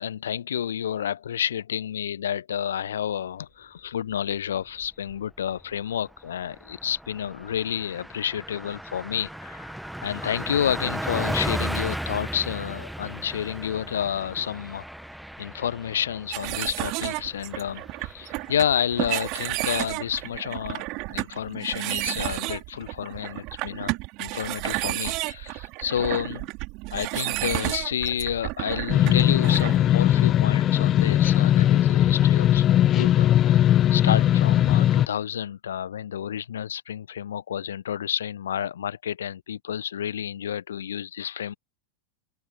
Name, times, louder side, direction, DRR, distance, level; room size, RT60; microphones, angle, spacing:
voice 1, 0.0-9.7 10.0-14.9 15.4-20.8 21.1-23.9 24.2-26.5 26.9-41.5, left 9 dB, 65° left, 1.0 m, -30 dB
Car passing by, 4.6-5.2 5.6-5.7 6.0-20.3, equal, ahead, 1.8 m, -36 dB
sound 1, 16.3-29.8, right 24 dB, 40° right, 3.0 m, -31 dB
sound 2, 28.9-35.1, left 12 dB, 30° left, 0.4 m, -19 dB
open air
figure-of-eight pair, 90°, 0 cm